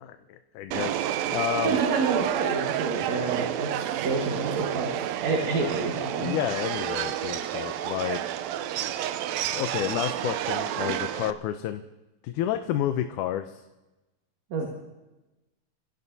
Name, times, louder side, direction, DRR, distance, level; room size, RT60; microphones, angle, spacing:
voice 1, 0.0-1.0 1.3-1.8 5.5-5.7 6.0-8.4 9.5-11.8 12.2-13.6, left 11 dB, 80° left, 8 dB, 2.1 m, -30 dB
Subway metro underground, 0.7-11.3, right 11 dB, 75° right, 1.7 m, -30 dB
voice 2, 1.6-6.3 14.5-14.7, right 4 dB, 60° right, 0 dB, 2.8 m, -28 dB
28.5 x 16.0 x 2.8 m, 1.1 s
omnidirectional pair, 3.7 m